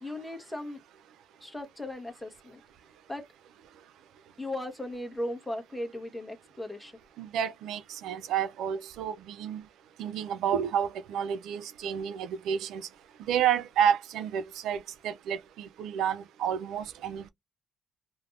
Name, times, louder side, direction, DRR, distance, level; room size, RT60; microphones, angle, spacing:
voice 1, 0.0-0.8 1.4-2.6 3.1-3.2 4.4-6.9, left 1 dB, 5° left, 1.2 m, -37 dB
voice 2, 7.2-9.6 10.0-12.9 13.3-17.3, right 9 dB, 85° right, 0.4 m, -30 dB
3.3 x 2.0 x 2.5 m
cardioid pair, 90°, 0 cm